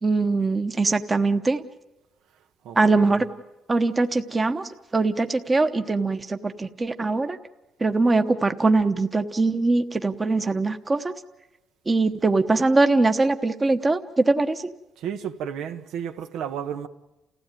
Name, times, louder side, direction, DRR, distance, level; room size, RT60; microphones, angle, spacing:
voice 1, 0.0-1.6 2.7-3.3 3.7-7.4 7.8-11.1 11.9-14.7, right 3 dB, 20° right, 1.1 m, -22 dB
voice 2, 2.6-3.2 15.0-16.9, right 8 dB, 80° right, 1.4 m, -33 dB
29.5 x 16.0 x 9.2 m
cardioid pair, 125°, 0 cm